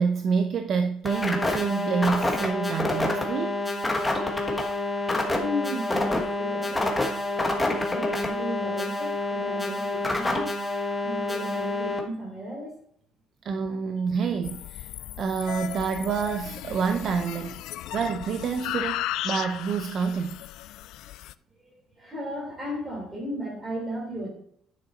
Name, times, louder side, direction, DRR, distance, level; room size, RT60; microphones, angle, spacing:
voice 1, 0.0-3.7 13.4-14.9 15.2-20.4, right 6 dB, 40° right, 7 dB, 0.5 m, -28 dB
sound 1, 1.0-12.0, left 2 dB, 10° left, 1.3 m, -27 dB
voice 2, 5.4-7.1 7.6-10.5 11.0-12.7 21.6-24.3, equal, 10° right, -1 dB, 3.3 m, -35 dB
sound 2, 14.4-21.3, left 14 dB, 65° left, 0.3 m, -36 dB
10.5 x 6.3 x 4.3 m, 0.64 s
cardioid pair, 180°, 0 cm